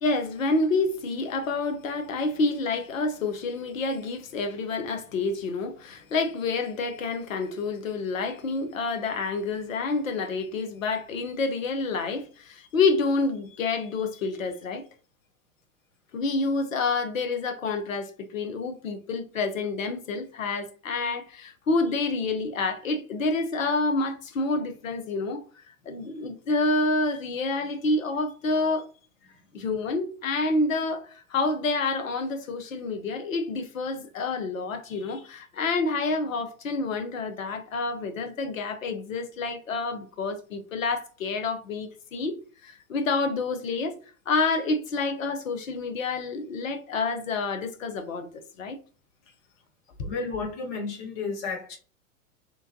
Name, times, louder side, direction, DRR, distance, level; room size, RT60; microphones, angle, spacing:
voice 1, 0.0-14.9 16.1-25.4 25.9-28.9 29.5-42.4 42.6-43.9 44.3-48.3 48.6-48.8, left 3 dB, 65° left, 0.8 m, -28 dB
voice 2, 50.0-51.8, left 4 dB, 15° left, 0.4 m, -32 dB
3.4 x 3.1 x 2.6 m
figure-of-eight pair, 100°, 44 cm